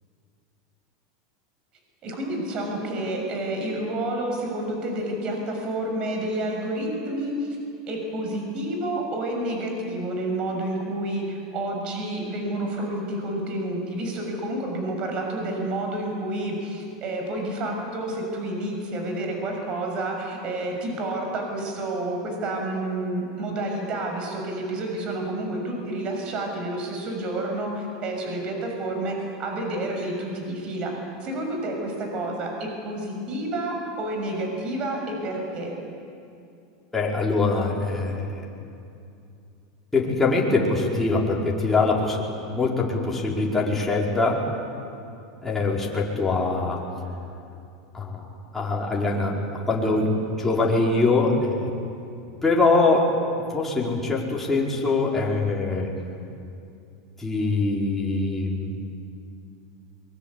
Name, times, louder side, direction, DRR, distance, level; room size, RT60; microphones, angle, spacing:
voice 1, 2.0-7.6 7.9-30.9 31.2-35.7, right 1 dB, 45° right, 2 dB, 6.6 m, -29 dB
voice 2, 36.9-38.5 39.9-44.4 45.4-46.8 47.9-48.2 48.5-49.4 49.7-50.1 50.4-51.7 52.4-53.1 53.5-55.9 57.2-58.8, left 3 dB, 10° left, -4 dB, 5.0 m, -23 dB
23.5 x 22.5 x 8.5 m, 2.6 s
hypercardioid pair, 105°, 2 cm